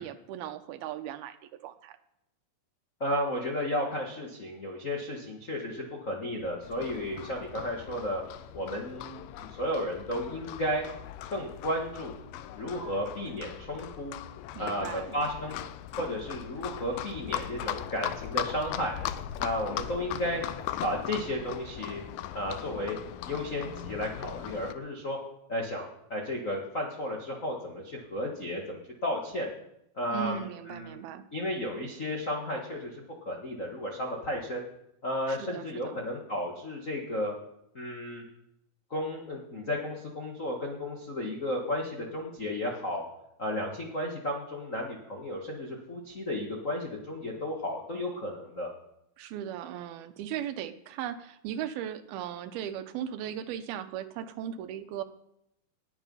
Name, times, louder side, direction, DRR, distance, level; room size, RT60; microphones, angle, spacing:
voice 1, 0.0-1.4 1.6-2.0 14.6-15.2 30.1-31.2 35.3-36.0 49.2-55.0, right 10 dB, 80° right, 10 dB, 2.5 m, -37 dB
voice 2, 3.0-8.2 8.5-10.8 11.3-12.1 12.5-14.1 14.6-15.6 16.0-19.0 19.4-20.4 20.8-22.0 22.3-23.0 23.3-25.2 25.5-29.5 29.9-31.0 31.3-34.6 35.0-37.3 37.7-38.2 38.9-43.0 43.4-48.7, left 1 dB, 65° left, -2 dB, 0.7 m, -33 dB
Livestock farm animals working animals, 6.6-24.7, left 12 dB, 85° left, 1.9 m, -39 dB
19.5 x 7.1 x 5.5 m, 0.81 s
omnidirectional pair, 4.6 m